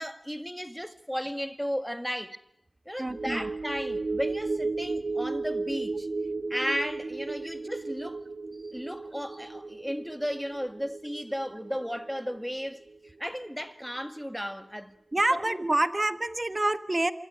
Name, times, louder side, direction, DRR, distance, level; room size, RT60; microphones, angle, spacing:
voice 1, 0.0-2.4 2.9-6.1 6.5-8.2 8.7-14.9 15.3-15.6, equal, ahead, 1.9 m, -34 dB
voice 2, 3.0-3.5 15.1-17.1, right 2 dB, 35° right, 1.4 m, -27 dB
sound 1, 3.1-13.7 14.0-14.2, right 3 dB, 70° right, 1.0 m, -35 dB
26.5 x 24.0 x 6.4 m
wide cardioid pair, 50°, 0 cm